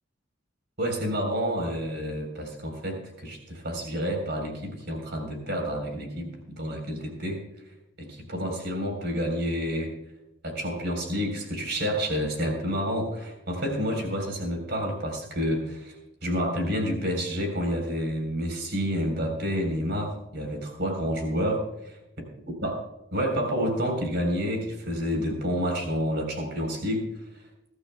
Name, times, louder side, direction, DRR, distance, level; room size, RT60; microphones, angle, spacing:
voice 1, 0.8-7.4 8.0-9.9 10.4-15.9 16.2-22.0 22.6-22.7 23.1-27.1, equal, 50° right, 3 dB, 3.8 m, -29 dB
21.5 x 12.5 x 2.2 m, 0.89 s
head